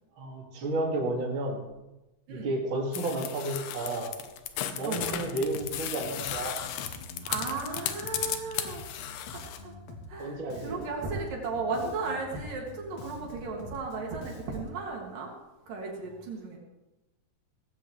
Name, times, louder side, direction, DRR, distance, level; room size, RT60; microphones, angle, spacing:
voice 1, 0.2-1.6 2.3-4.1 4.7-6.6 10.2-10.8, right 2 dB, 40° right, -1 dB, 2.7 m, -32 dB
sound 1, 2.9-9.6, left 10 dB, 80° left, 2.7 m, -35 dB
voice 2, 4.8-5.2 7.2-8.9 9.4-9.7 10.1-15.3 15.7-16.6, right 4 dB, 75° right, -1 dB, 4.1 m, -35 dB
Bass guitar, 4.9-5.3 5.5-10.2 10.5-14.8, left 3 dB, 55° left, 1.8 m, -46 dB
18.5 x 15.0 x 3.3 m, 1.0 s
omnidirectional pair, 3.9 m